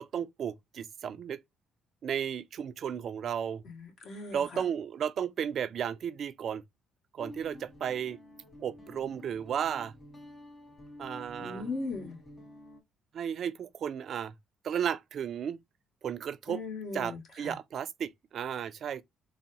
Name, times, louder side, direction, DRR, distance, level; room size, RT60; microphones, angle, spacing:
voice 1, 0.0-1.4 2.0-3.6 4.3-6.6 7.1-8.2 8.6-9.9 11.0-11.7 13.1-14.3 14.6-15.6 16.0-16.6 16.9-19.0, right 8 dB, 60° right, 0.4 m, -34 dB
voice 2, 3.6-4.6 11.4-12.2 16.5-17.6, left 3 dB, 60° left, 1.7 m, -38 dB
Guitar, 7.2-12.8, left 1 dB, 30° left, 1.7 m, -50 dB
3.9 x 2.1 x 2.7 m
supercardioid pair, 65°, 0 cm